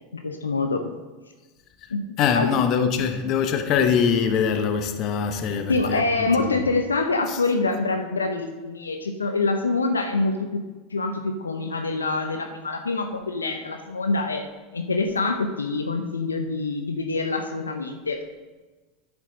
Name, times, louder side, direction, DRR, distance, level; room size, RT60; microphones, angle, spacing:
voice 1, 0.2-0.8 1.9-2.0 2.3-2.5 5.7-10.3 10.9-14.4 14.7-18.2, left 3 dB, 90° left, 0.7 m, -25 dB
voice 2, 2.2-6.6 7.3-7.4, left 7 dB, 50° left, 0.9 m, -23 dB
9.9 x 7.1 x 3.9 m
hypercardioid pair, 85°, 0 cm